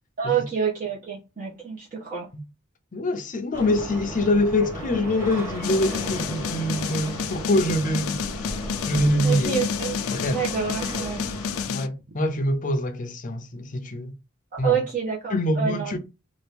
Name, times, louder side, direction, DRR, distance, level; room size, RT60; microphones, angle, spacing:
voice 1, 0.2-2.3 9.2-9.9 10.3-11.3 14.5-15.9, right 7 dB, 40° right, 0.9 m, -27 dB
voice 2, 2.9-8.5 8.9-9.6 10.1-10.4 11.7-14.1 14.6-14.8 15.3-16.0, left 1 dB, 40° left, 0.6 m, -25 dB
sound 1, 3.5-11.7, equal, 10° right, 1.3 m, -36 dB
sound 2, 5.6-11.9, left 7 dB, 85° left, 0.4 m, -30 dB
2.9 x 2.4 x 3.4 m
head